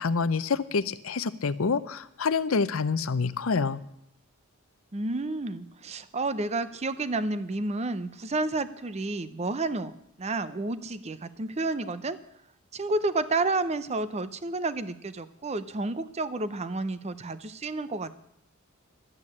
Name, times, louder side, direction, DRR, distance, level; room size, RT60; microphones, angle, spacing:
voice 1, 0.0-3.8, left 4 dB, 65° left, 15 dB, 0.6 m, -27 dB
voice 2, 4.9-9.9 10.2-12.2 12.7-18.2, right 2 dB, 30° right, 14 dB, 0.6 m, -30 dB
12.0 x 8.7 x 8.5 m, 0.77 s
head